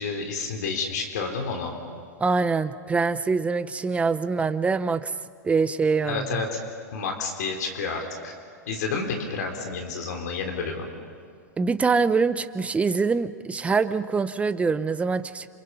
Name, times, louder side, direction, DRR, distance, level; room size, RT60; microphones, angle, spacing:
voice 1, 0.0-1.7 6.0-6.6 6.9-8.3 8.7-10.9, left 4 dB, 70° left, 3 dB, 3.7 m, -30 dB
voice 2, 2.2-5.1 5.4-6.4 11.6-15.5, right 4 dB, 15° right, 12 dB, 0.9 m, -24 dB
28.0 x 27.0 x 5.6 m, 2.1 s
hypercardioid pair, 110°, 9 cm